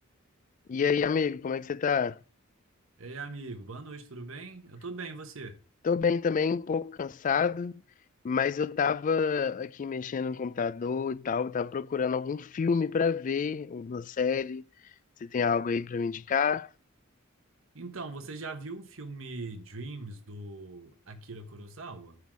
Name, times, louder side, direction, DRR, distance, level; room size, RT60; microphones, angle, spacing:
voice 1, 0.7-2.2 5.8-7.8 8.2-14.6 15.2-16.7, left 6 dB, 40° left, 0.3 m, -28 dB
voice 2, 3.0-5.5 17.7-22.2, right 3 dB, 70° right, 1.2 m, -41 dB
9.5 x 3.9 x 6.0 m
head